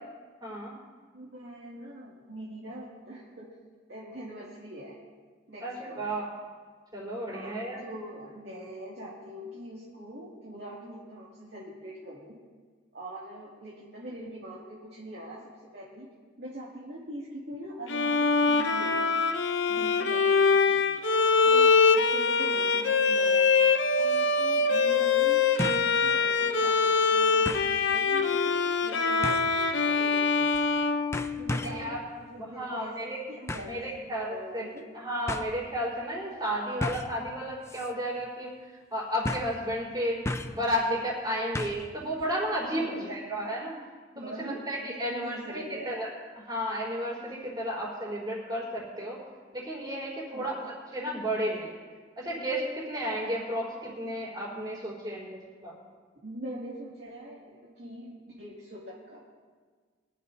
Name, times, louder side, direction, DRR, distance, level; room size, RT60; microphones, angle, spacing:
voice 1, 0.4-0.7 5.6-6.3 6.9-7.8 31.6-32.0 32.4-33.1 33.7-34.7 34.9-38.5 38.9-40.2 40.5-43.7 44.2-46.1 46.4-49.2 49.5-51.7 52.2-55.8, equal, 20° right, -5 dB, 4.2 m, -33 dB
voice 2, 1.1-3.5 3.9-5.0 5.5-6.2 7.3-12.3 12.9-16.1 16.4-19.0 19.7-21.0 21.4-23.5 23.9-30.5 31.4-34.8 42.7-43.2 44.1-46.0 50.3-50.7 56.2-59.2, right 1 dB, 55° right, -6 dB, 2.5 m, -43 dB
Bowed string instrument, 17.9-31.8, left 4 dB, 75° left, 0.8 m, -24 dB
sound 1, 23.7-23.8 25.6-25.9 26.4-26.5 27.5-27.7 29.2-29.6 30.5-30.8 31.1-31.9 33.5-33.8 34.8-34.9 35.3-35.5 36.8-37.2 37.7-37.9 38.2-38.3 39.2-39.6 40.3-40.6 41.6-41.9 42.2-42.3, left 1 dB, 15° left, 0.5 m, -34 dB
23.0 x 13.0 x 2.8 m, 1.5 s
head